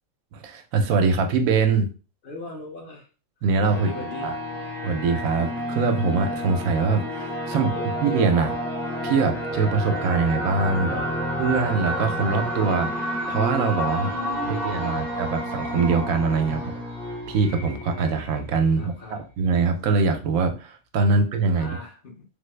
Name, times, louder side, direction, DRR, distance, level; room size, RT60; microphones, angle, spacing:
voice 1, 0.3-1.9 3.4-3.9 4.2-4.3 4.8-7.7 8.0-8.5 9.0-11.0 11.4-14.1 14.4-16.7 17.3-21.8, right 4 dB, 80° right, 6 dB, 1.0 m, -23 dB
voice 2, 2.2-3.1 3.7-4.3 7.4-8.0 10.8-11.2 13.9-15.2 16.4-16.8 18.7-19.2 21.5-22.2, left 2 dB, 50° left, -1 dB, 0.8 m, -39 dB
sound 1, 3.6-19.0, equal, ahead, 0.4 m, -30 dB
3.6 x 2.0 x 3.1 m, 0.35 s
omnidirectional pair, 1.4 m